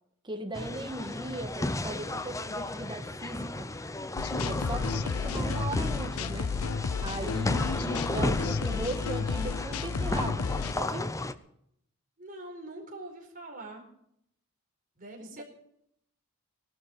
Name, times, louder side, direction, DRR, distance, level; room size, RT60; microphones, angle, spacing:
voice 1, 0.2-3.7 4.4-6.5 7.0-11.1 15.2-15.4, right 2 dB, 20° right, 6 dB, 1.5 m, -38 dB
sound 1, 0.5-11.3, left 2 dB, 15° left, 0.7 m, -34 dB
sound 2, 4.2-10.7, left 5 dB, 70° left, 0.5 m, -32 dB
voice 2, 12.2-13.9 15.0-15.4, right 2 dB, 40° right, 0 dB, 4.4 m, -43 dB
18.5 x 12.5 x 5.4 m, 0.73 s
head